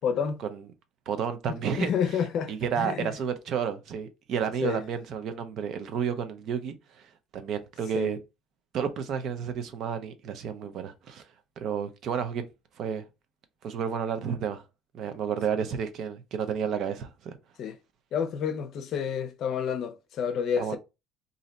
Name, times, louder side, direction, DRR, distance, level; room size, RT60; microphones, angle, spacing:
voice 1, 0.0-0.4 1.5-3.1 4.6-4.8 7.9-8.1 17.6-17.8 18.1-20.8, left 7 dB, 55° left, 0.5 m, -30 dB
voice 2, 1.1-1.9 2.5-6.7 7.3-8.2 8.7-11.2 11.6-12.4 12.8-13.1 13.6-14.6 14.9-17.4 20.6-20.8, right 7 dB, 60° right, 0.5 m, -31 dB
2.6 x 2.1 x 3.9 m
cardioid pair, 120°, 0 cm